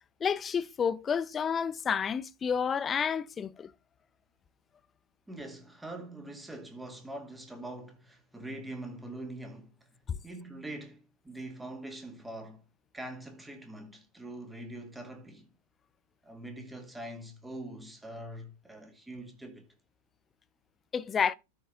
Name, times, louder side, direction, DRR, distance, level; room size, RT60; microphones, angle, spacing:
voice 1, 0.2-3.7 10.1-10.2 20.9-21.3, left 7 dB, 20° left, 0.5 m, -30 dB
voice 2, 5.3-9.9 10.2-12.6 12.9-15.5 16.2-19.7, right 1 dB, 5° right, 2.1 m, -43 dB
13.0 x 4.7 x 3.9 m
figure-of-eight pair, 90°, 0 cm